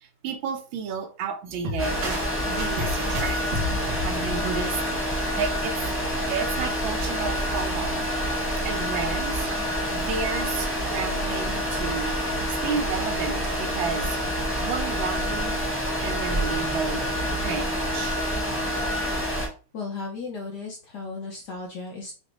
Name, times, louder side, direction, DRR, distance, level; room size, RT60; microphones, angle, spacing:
voice 1, 0.0-2.2 2.5-3.4 3.9-5.8 6.3-8.1 8.6-9.5 9.9-12.1 12.5-14.2 14.6-15.6 16.0-17.0 17.4-18.2, right 6 dB, 70° right, 1.4 m, -32 dB
sound 1, 1.5-5.4, left 2 dB, 90° right, 1.9 m, -33 dB
sound 2, 1.8-19.5, equal, 10° left, 0.6 m, -27 dB
voice 2, 19.7-22.1, left 4 dB, 65° left, 1.1 m, -35 dB
5.1 x 2.2 x 3.0 m
omnidirectional pair, 2.4 m